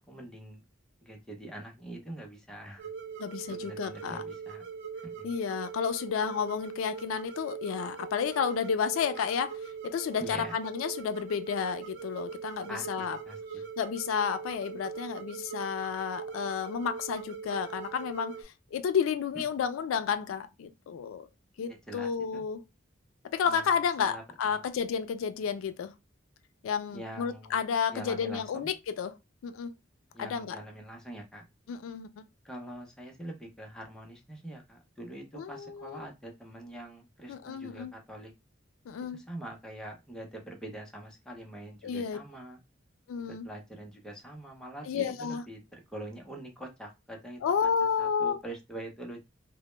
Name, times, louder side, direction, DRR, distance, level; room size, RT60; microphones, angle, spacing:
voice 1, 0.1-0.6 1.0-2.9 3.5-4.6 5.0-5.3 10.2-10.6 12.7-13.6 19.5-19.6 21.7-22.5 23.5-24.2 24.5-24.6 26.9-27.6 27.9-28.7 30.1-31.5 32.4-38.3 39.1-42.6 43.2-49.2, right 1 dB, 5° left, 0.5 m, -44 dB
sound 1, 2.8-18.4, right 6 dB, 60° right, 0.4 m, -41 dB
voice 2, 3.2-4.2 5.2-13.2 13.8-21.3 21.6-22.6 23.3-25.9 26.6-29.1 29.4-29.7 30.2-30.6 31.7-32.3 35.3-36.1 37.3-37.9 38.9-39.2 41.8-42.2 43.1-43.5 44.9-45.4 47.4-48.4, left 7 dB, 85° left, 0.3 m, -31 dB
2.0 x 2.0 x 3.0 m
head